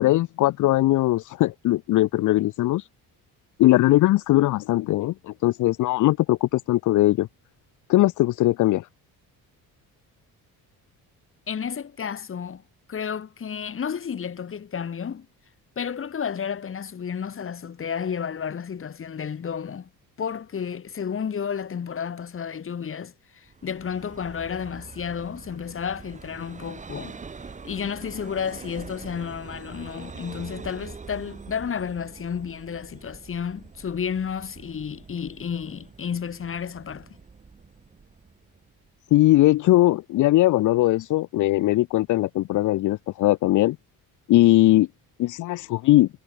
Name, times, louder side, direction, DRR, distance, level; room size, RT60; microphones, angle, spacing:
voice 1, 0.0-2.9 3.6-7.3 7.9-8.9 39.1-43.8 44.3-44.9 45.2-46.1, left 16 dB, 55° left, 0.5 m, -20 dB
voice 2, 11.5-12.6 12.9-15.3 15.8-19.9 20.2-27.2 27.6-37.1, left 7 dB, 35° left, 1.9 m, -32 dB
Vehicle, 23.5-38.9, right 5 dB, 20° right, 1.0 m, -44 dB
cardioid pair, 120°, 37 cm